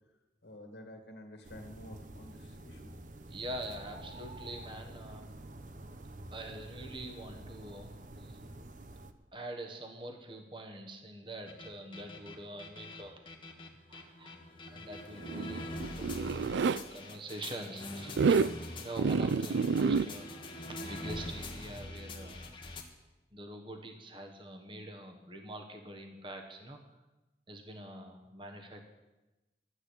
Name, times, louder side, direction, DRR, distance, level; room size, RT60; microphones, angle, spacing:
voice 1, 0.4-2.9, left 1 dB, 80° left, 4 dB, 2.1 m, -50 dB
sound 1, 1.4-9.1, right 1 dB, 45° right, 0.8 m, -48 dB
voice 2, 3.3-5.3 6.3-8.4 9.3-13.2 13.5-13.6 13.9-18.4 18.8-22.4 23.3-26.8 27.5-28.9, right 1 dB, 30° right, 4 dB, 1.3 m, -45 dB
sound 2, 11.5-22.8, left 1 dB, 30° left, 1.4 m, -44 dB
Zipper (clothing), 15.2-16.8 18.1-18.5 19.0-20.1, right 5 dB, 90° right, 0.4 m, -28 dB
13.0 x 8.5 x 8.3 m, 1.1 s
head